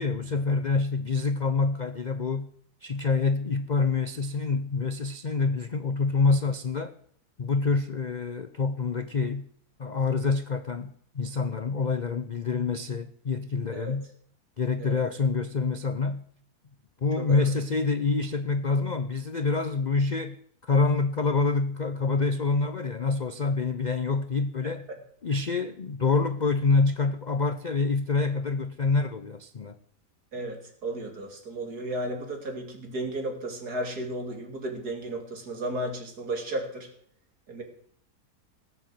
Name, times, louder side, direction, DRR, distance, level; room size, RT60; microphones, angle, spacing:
voice 1, 0.0-2.5 2.8-6.9 7.4-9.5 9.8-14.1 14.6-16.2 17.0-24.9 25.2-29.7, left 4 dB, 60° left, 0.4 m, -26 dB
voice 2, 17.2-17.5 24.6-24.7 30.3-36.9 37.5-37.6, right 1 dB, 65° right, 3.2 m, -34 dB
18.0 x 8.0 x 7.7 m
omnidirectional pair, 1.8 m